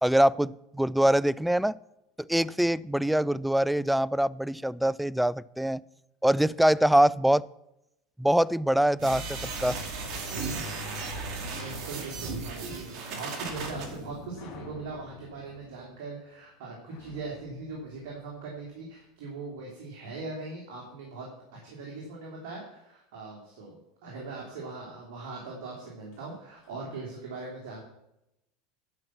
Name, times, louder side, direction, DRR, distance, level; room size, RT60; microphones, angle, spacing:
voice 1, 0.0-1.8 2.3-5.8 6.2-7.4 8.2-9.2 9.6-9.8, right 1 dB, 5° right, 21 dB, 0.3 m, -24 dB
sound 1, 9.0-13.9, right 3 dB, 55° right, 2.3 m, -35 dB
voice 2, 11.6-27.8, right 3 dB, 70° right, -2 dB, 3.1 m, -40 dB
sound 2, 13.4-18.8 26.1-26.3 26.6-26.8, left 3 dB, 60° left, 2.1 m, -47 dB
11.0 x 5.9 x 7.2 m, 0.87 s
supercardioid pair, 105°, 0 cm